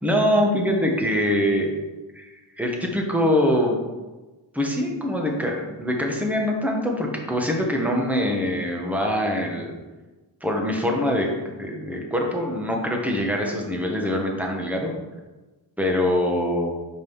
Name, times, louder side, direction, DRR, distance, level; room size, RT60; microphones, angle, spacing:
voice 1, 0.0-1.7 2.1-3.8 4.5-9.8 10.4-11.3 11.6-14.9 15.8-16.7, left 1 dB, 5° right, 0 dB, 1.4 m, -23 dB
5.4 x 5.1 x 5.6 m, 1.2 s
wide cardioid pair, 90°, 47 cm